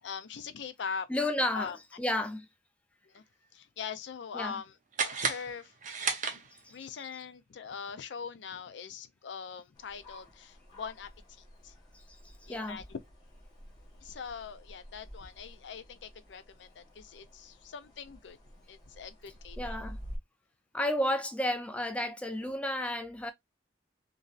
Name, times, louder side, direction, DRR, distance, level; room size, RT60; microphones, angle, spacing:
voice 1, 0.0-1.8 3.1-3.2 3.5-5.7 6.0-6.4 6.7-11.7 12.5-13.0 14.0-18.4 18.7-19.8, left 6 dB, 70° left, 0.4 m, -42 dB
voice 2, 1.1-1.7 2.0-2.5 4.3-4.6 6.6-6.7 12.5-12.8 19.6-20.0 20.7-23.3, left 1 dB, 5° left, 0.3 m, -32 dB
sound 1, 4.9-6.9, right 5 dB, 45° right, 0.6 m, -34 dB
sound 2, 9.7-20.2, equal, 20° left, 1.0 m, -50 dB
3.0 x 2.6 x 2.3 m
head